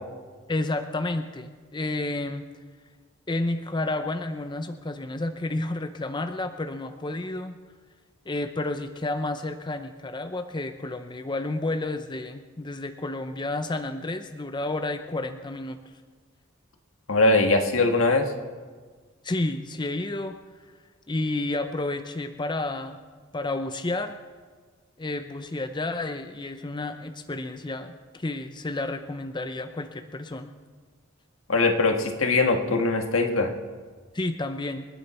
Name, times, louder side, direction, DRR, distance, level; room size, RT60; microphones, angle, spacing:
voice 1, 0.5-2.4 3.3-7.6 8.3-15.8 19.2-20.4 21.1-23.0 23.3-24.1 25.0-30.5 34.1-34.9, left 2 dB, 20° left, 8 dB, 0.6 m, -31 dB
voice 2, 17.1-18.3 31.5-33.5, left 3 dB, 80° left, 4 dB, 1.7 m, -21 dB
27.0 x 10.0 x 4.3 m, 1.5 s
head